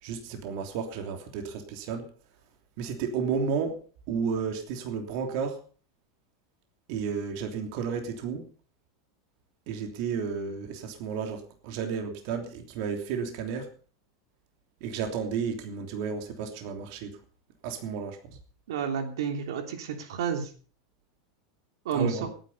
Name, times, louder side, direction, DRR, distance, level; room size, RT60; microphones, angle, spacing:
voice 1, 0.0-2.1 2.8-3.8 4.1-5.6 6.9-8.5 9.7-13.7 14.8-17.1 17.6-18.2 21.9-22.3, right 6 dB, 50° right, 5 dB, 3.1 m, -32 dB
voice 2, 18.7-20.5 21.8-22.2, right 6 dB, 85° right, 6 dB, 3.1 m, -30 dB
18.5 x 10.0 x 5.5 m, 0.40 s
supercardioid pair, 165°, 2 cm